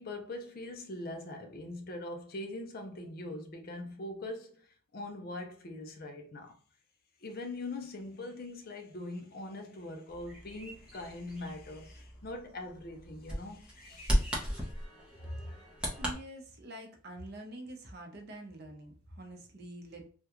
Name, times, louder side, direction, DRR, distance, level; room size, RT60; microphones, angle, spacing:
voice 1, 0.0-4.7 4.9-6.5 7.2-14.5, left 2 dB, 45° left, 0.5 m, -42 dB
Bird vocalization bird call bird song, 10.1-16.1, equal, 5° right, 0.7 m, -36 dB
voice 2, 16.0-20.1, right 1 dB, 50° right, 0.7 m, -45 dB
3.5 x 2.3 x 2.9 m
head